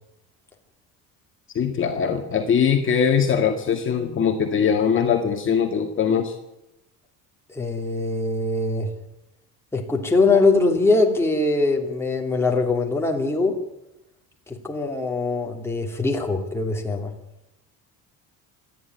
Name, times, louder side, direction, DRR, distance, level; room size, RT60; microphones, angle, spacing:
voice 1, 1.5-6.3, left 7 dB, 35° left, 3 dB, 1.9 m, -21 dB
voice 2, 7.5-8.9 9.7-13.6 14.5-17.1, left 3 dB, 5° left, 0 dB, 2.9 m, -22 dB
26.5 x 11.0 x 9.6 m, 0.90 s
cardioid pair, 150°, 35 cm